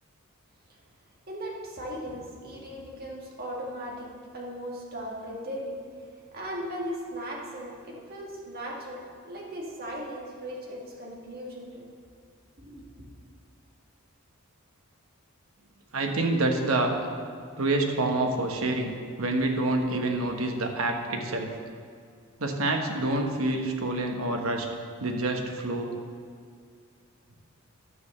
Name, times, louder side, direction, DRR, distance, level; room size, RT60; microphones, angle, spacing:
voice 1, 1.3-4.1 4.3-5.8 6.3-11.8 12.6-12.8, equal, 45° right, -2 dB, 2.0 m, -37 dB
voice 2, 15.9-17.0 17.6-18.9 19.2-21.5 22.4-24.7 25.0-25.9, right 2 dB, 75° right, 3 dB, 1.2 m, -27 dB
10.5 x 6.5 x 6.7 m, 2.2 s
head